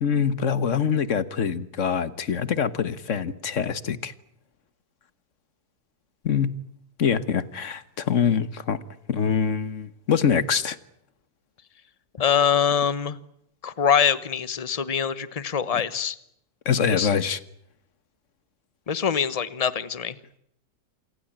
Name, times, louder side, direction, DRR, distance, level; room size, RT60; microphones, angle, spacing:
voice 1, 0.0-4.1 6.2-6.5 7.0-8.8 9.1-10.8 16.6-17.4, left 7 dB, 50° left, 1.5 m, -24 dB
voice 2, 12.2-13.2 13.6-16.2 16.9-17.1 18.9-20.2, left 7 dB, 25° left, 1.0 m, -24 dB
28.0 x 18.5 x 8.8 m
omnidirectional pair, 1.7 m